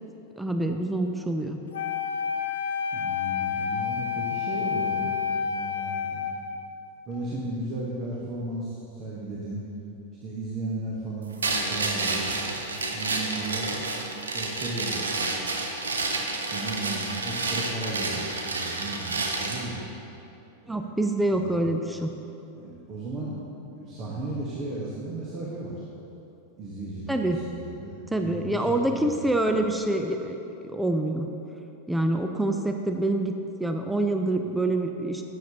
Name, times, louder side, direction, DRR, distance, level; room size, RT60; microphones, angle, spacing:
voice 1, 0.4-1.6 20.7-22.1 27.1-27.4 28.1-30.4 30.6-31.3 31.9-35.2, right 1 dB, 5° right, 5 dB, 0.5 m, -26 dB
Wind instrument woodwind instrument, 1.7-6.8, left 7 dB, 60° left, 0.5 m, -29 dB
voice 2, 2.9-5.1 5.5-6.3 7.1-9.6 10.2-12.3 12.9-13.8 14.3-15.4 16.3-19.8 20.6-20.9 21.3-21.5 22.5-25.8 26.6-28.0 28.2-29.3, right 2 dB, 35° right, -5 dB, 1.2 m, -35 dB
sound 1, 11.4-19.7, right 3 dB, 70° right, 0.8 m, -29 dB
12.0 x 8.3 x 2.9 m, 2.9 s
figure-of-eight pair, 90°, 0 cm